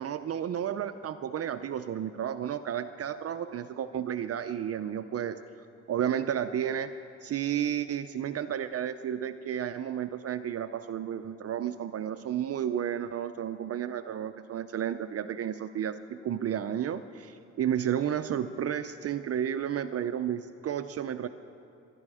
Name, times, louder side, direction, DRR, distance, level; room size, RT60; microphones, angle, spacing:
voice 1, 0.0-5.4 5.9-6.9 7.2-21.3, right 9 dB, 50° right, 9 dB, 0.6 m, -32 dB
23.0 x 12.5 x 4.9 m, 2.8 s
cardioid pair, 90°, 30 cm